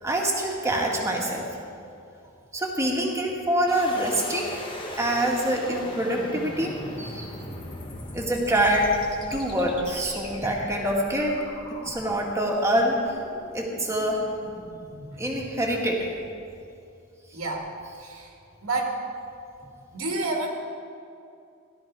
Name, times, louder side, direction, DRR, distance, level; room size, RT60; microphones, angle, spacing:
voice 1, 0.0-1.5 2.5-4.5 5.0-7.3 8.1-8.9 9.3-11.4 11.8-13.2 13.5-14.2 15.2-16.1, right 1 dB, 15° right, -1 dB, 1.9 m, -25 dB
sound 1, 3.7-16.6, left 1 dB, 25° left, 1.5 m, -40 dB
voice 2, 17.3-17.7 18.0-18.3 18.6-19.0 19.9-20.5, right 2 dB, 85° right, 0 dB, 2.2 m, -29 dB
17.0 x 12.5 x 4.8 m, 2.6 s
head